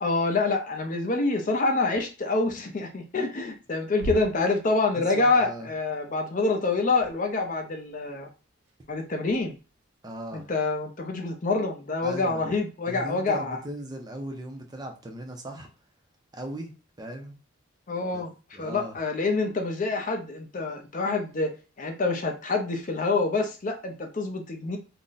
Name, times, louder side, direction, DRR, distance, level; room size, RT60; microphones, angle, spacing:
voice 1, 0.0-8.3 8.9-9.5 10.3-13.6 17.9-18.3 18.6-24.8, left 3 dB, 35° left, 0.4 m, -26 dB
sound 1, 1.9-2.8 3.2-3.5 3.9-5.5 6.8-7.9 8.6-10.0, left 1 dB, 75° right, 0.9 m, -41 dB
voice 2, 4.9-5.7 10.0-10.5 12.0-12.4 12.9-15.7 16.3-17.4 18.1-18.2 18.5-19.0, right 1 dB, 20° right, 0.4 m, -38 dB
2.4 x 2.1 x 3.8 m
head